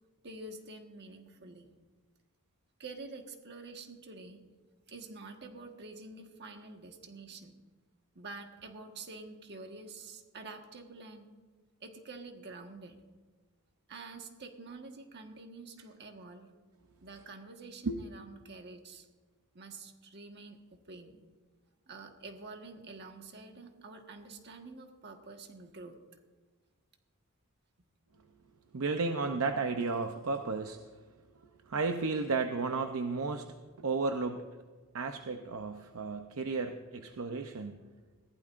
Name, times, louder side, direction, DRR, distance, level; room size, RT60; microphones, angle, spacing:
voice 1, 0.2-1.7 2.8-4.4 4.9-7.5 8.1-11.3 11.8-13.0 13.9-16.5 17.0-19.1 19.5-21.2 21.9-25.9, right 3 dB, 50° right, 4 dB, 1.5 m, -48 dB
voice 2, 28.7-30.8 31.7-34.4 34.9-37.8, right 4 dB, 65° right, 6 dB, 0.6 m, -33 dB
20.5 x 16.0 x 2.5 m, 1.4 s
head